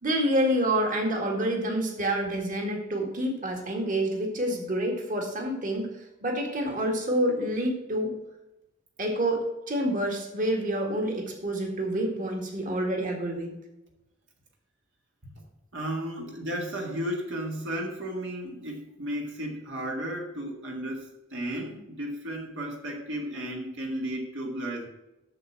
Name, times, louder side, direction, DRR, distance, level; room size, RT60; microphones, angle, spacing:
voice 1, 0.0-5.9 6.2-8.1 9.0-13.5, right 1 dB, 45° right, 2 dB, 2.0 m, -28 dB
voice 2, 15.7-24.9, equal, 65° right, 0 dB, 1.9 m, -34 dB
8.0 x 7.2 x 6.1 m, 0.96 s
head